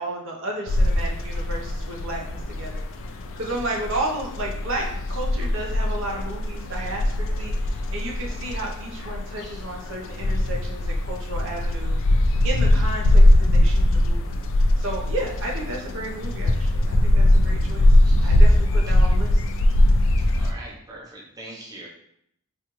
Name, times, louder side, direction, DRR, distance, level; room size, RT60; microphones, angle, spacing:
voice 1, 0.0-12.0 12.4-13.2 13.5-14.4 14.8-19.4, right 1 dB, 60° right, -1 dB, 0.7 m, -33 dB
sound 1, 0.7-20.5, left 1 dB, 60° left, 0.3 m, -21 dB
voice 2, 20.4-21.9, right 1 dB, 15° right, -4 dB, 0.5 m, -42 dB
4.2 x 2.4 x 3.0 m, 0.72 s
head